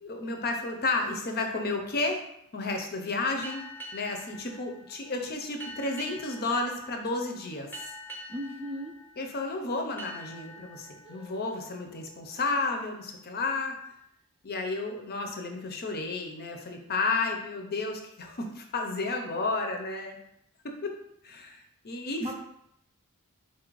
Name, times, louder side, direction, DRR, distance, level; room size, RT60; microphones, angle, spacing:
voice 1, 0.0-2.2 2.5-7.7 9.2-13.8 14.4-20.2 20.6-21.0 21.2-22.3, left 3 dB, 45° left, 3 dB, 0.6 m, -32 dB
sound 1, 3.4-12.7, equal, 10° left, 0.8 m, -46 dB
voice 2, 8.3-9.0 11.0-11.4 22.2-22.3, equal, 25° right, 2 dB, 0.5 m, -37 dB
4.3 x 2.5 x 4.6 m, 0.76 s
head